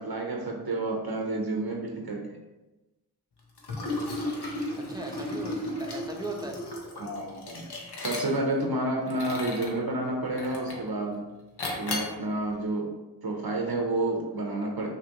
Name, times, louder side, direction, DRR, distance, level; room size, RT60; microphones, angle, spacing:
voice 1, 0.0-2.2 3.7-3.8 7.0-7.7 8.0-11.2 11.8-14.9, right 2 dB, 65° right, 1 dB, 0.8 m, -30 dB
Liquid, 3.6-8.6 9.1-9.8 10.4-10.9 11.6-12.2, left 1 dB, 75° left, 1.0 m, -34 dB
voice 2, 4.8-6.6, right 2 dB, 10° right, 1 dB, 0.8 m, -38 dB
6.1 x 2.9 x 3.0 m, 1.1 s
wide cardioid pair, 45°, 41 cm